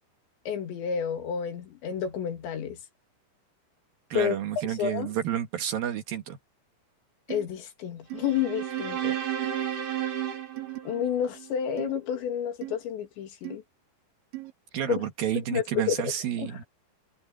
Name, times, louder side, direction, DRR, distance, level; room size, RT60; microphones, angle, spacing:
voice 1, 0.5-2.8 4.1-4.4 4.8-5.1 7.3-9.2 10.8-13.6 14.9-15.1 15.5-16.1 16.4-16.6, left 8 dB, 80° left, 4.8 m, -30 dB
voice 2, 4.1-6.4 14.7-16.6, right 10 dB, 65° right, 2.9 m, -30 dB
sound 1, 7.3-7.5 8.1-8.2 8.8-8.9 9.4-9.7 10.6-10.8 11.8-11.9 12.6-12.8 13.4-13.6 14.3-14.5, right 19 dB, 90° right, 3.7 m, -38 dB
sound 2, 8.1-11.5, right 10 dB, 50° right, 4.2 m, -32 dB
omnidirectional pair, 5.1 m